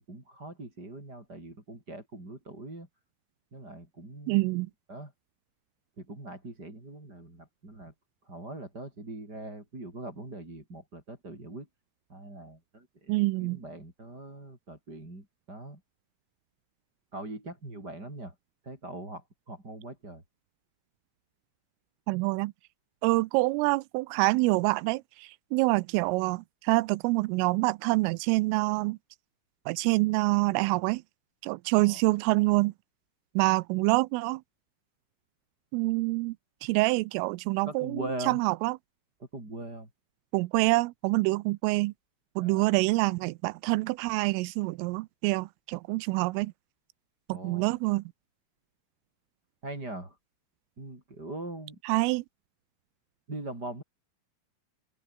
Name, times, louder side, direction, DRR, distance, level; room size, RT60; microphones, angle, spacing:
voice 1, 0.0-2.9 3.5-4.5 4.9-5.1 6.0-7.9 8.2-11.7 12.1-15.8 17.1-18.3 18.6-20.2 31.8-32.0 37.6-38.4 39.2-39.9 42.4-42.8 47.3-47.7 49.6-50.2 50.8-51.8 53.3-53.8, right 2 dB, 20° right, 6.8 m, -41 dB
voice 2, 4.3-4.7 13.1-13.6 22.1-22.5 23.0-29.0 29.7-31.0 31.4-32.7 33.4-34.4 35.7-36.4 36.6-38.8 40.3-41.9 42.4-46.5 47.3-48.0 51.8-52.2, right 23 dB, 90° right, 3.3 m, -26 dB
open air
omnidirectional pair, 5.7 m